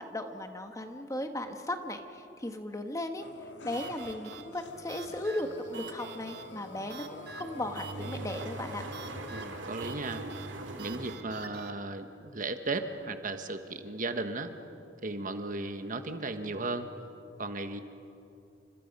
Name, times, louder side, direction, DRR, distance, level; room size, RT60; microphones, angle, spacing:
voice 1, 0.0-3.3 3.6-8.8, left 1 dB, 15° left, 6 dB, 1.4 m, -36 dB
sound 1, 3.2-9.8, left 2 dB, 70° left, 1.8 m, -48 dB
sound 2, 3.7-11.7, right 6 dB, 60° right, 1.5 m, -48 dB
sound 3, 4.6-11.2, right 2 dB, 85° right, 2.2 m, -42 dB
voice 2, 9.3-10.3 10.8-14.5 15.0-16.9 17.4-17.8, right 2 dB, 45° right, 8 dB, 1.3 m, -35 dB
29.5 x 26.0 x 5.4 m, 2.6 s
head